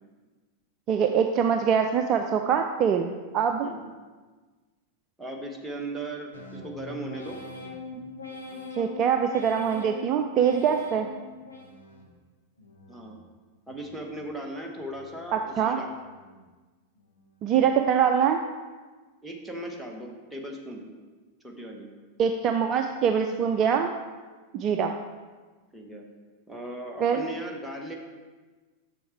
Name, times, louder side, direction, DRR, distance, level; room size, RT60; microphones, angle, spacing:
voice 1, 0.9-3.7 8.7-11.1 15.3-15.8 17.4-18.4 22.2-23.9 24.5-24.9 27.0-27.2, right 7 dB, 35° right, 6 dB, 0.4 m, -24 dB
voice 2, 5.2-7.4 12.9-13.2 13.7-15.9 19.2-20.8 21.4-21.9 25.7-26.0 26.5-27.9, right 1 dB, 5° right, 0 dB, 1.2 m, -37 dB
sound 1, 6.3-12.2 12.6-13.2 13.7-14.3 14.8-15.4 15.9-16.5 17.0-17.5, left 2 dB, 80° left, 1.2 m, -43 dB
7.1 x 6.7 x 4.5 m, 1.3 s
figure-of-eight pair, 90°, 0 cm